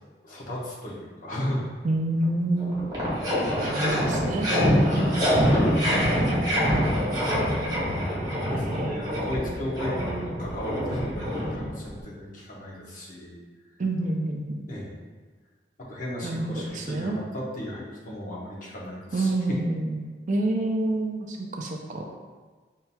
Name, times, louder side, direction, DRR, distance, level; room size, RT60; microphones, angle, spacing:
voice 1, 0.2-1.7 5.1-5.2 8.5-9.9 10.2-13.4 14.7-14.9 15.8-19.3, left 1 dB, 50° left, -5 dB, 0.9 m, -35 dB
voice 2, 1.8-3.0 3.6-4.5 5.6-6.2 7.1-7.7 8.1-10.4 13.8-14.7 16.2-17.2 19.1-22.0, right 2 dB, 45° right, 1 dB, 0.4 m, -29 dB
sound 1, 2.2-2.3 2.6-12.0, equal, 20° right, 0.9 m, -25 dB
5.6 x 2.7 x 2.2 m, 1.4 s
head